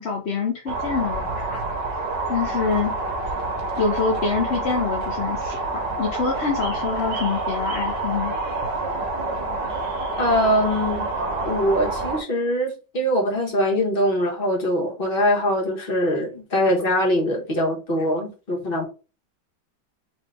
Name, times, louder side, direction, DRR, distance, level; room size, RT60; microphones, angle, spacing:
voice 1, 0.0-1.6 2.3-2.9 3.8-8.3, left 5 dB, 50° left, 0.8 m, -26 dB
sound 1, 0.7-12.2, right 2 dB, 80° right, 1.6 m, -27 dB
voice 2, 10.2-11.1 11.4-18.8, equal, 35° left, 1.3 m, -22 dB
4.0 x 2.9 x 3.5 m
omnidirectional pair, 1.9 m